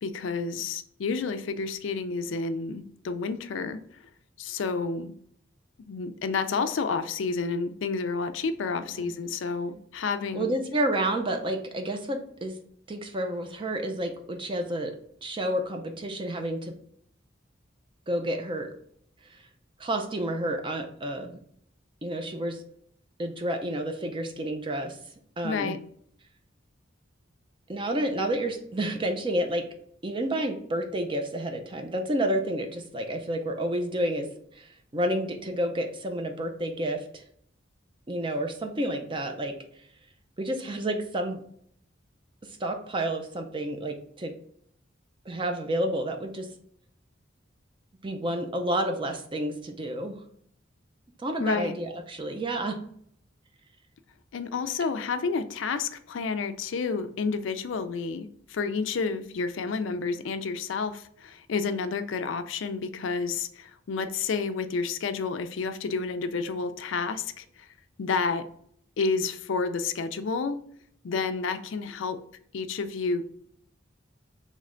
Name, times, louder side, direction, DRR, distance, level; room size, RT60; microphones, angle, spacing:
voice 1, 0.0-4.0 4.4-5.1 5.8-10.5 25.4-25.8 51.4-51.7 54.3-67.7 68.0-68.4 69.0-70.6 71.0-72.2 72.5-73.2, left 4 dB, 70° left, 9 dB, 0.4 m, -30 dB
voice 2, 10.3-12.6 12.9-14.9 15.2-16.7 18.1-18.7 19.3-19.4 19.8-21.4 22.0-22.6 23.2-25.0 25.4-25.8 27.7-29.6 30.0-34.3 34.5-37.2 38.1-39.5 40.4-41.4 42.6-44.3 45.3-46.5 48.0-50.2 51.2-52.8, right 1 dB, 25° right, 4 dB, 0.5 m, -30 dB
3.2 x 3.2 x 3.7 m, 0.64 s
head